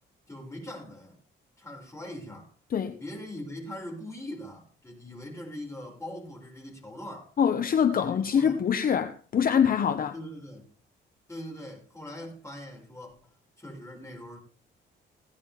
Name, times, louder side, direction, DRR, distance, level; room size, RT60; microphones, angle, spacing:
voice 1, 0.3-1.2 1.6-2.5 3.0-7.3 8.0-8.6 10.1-10.7 11.3-13.3 13.6-14.4, left 1 dB, 15° left, 6.5 m, -41 dB
voice 2, 7.4-10.1, left 7 dB, 45° left, 1.0 m, -24 dB
17.0 x 10.0 x 3.7 m
cardioid pair, 90°, 20 cm